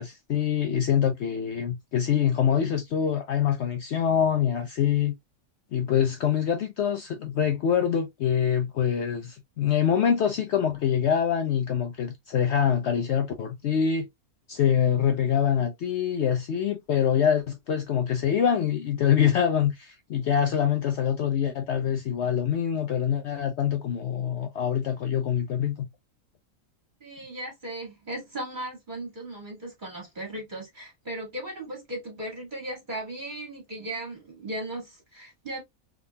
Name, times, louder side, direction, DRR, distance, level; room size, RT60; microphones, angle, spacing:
voice 1, 0.0-5.1 5.7-14.1 14.5-25.9, left 8 dB, 65° left, 0.7 m, -25 dB
voice 2, 27.0-35.6, right 1 dB, 35° right, 2.0 m, -37 dB
3.6 x 3.5 x 2.2 m
omnidirectional pair, 1.5 m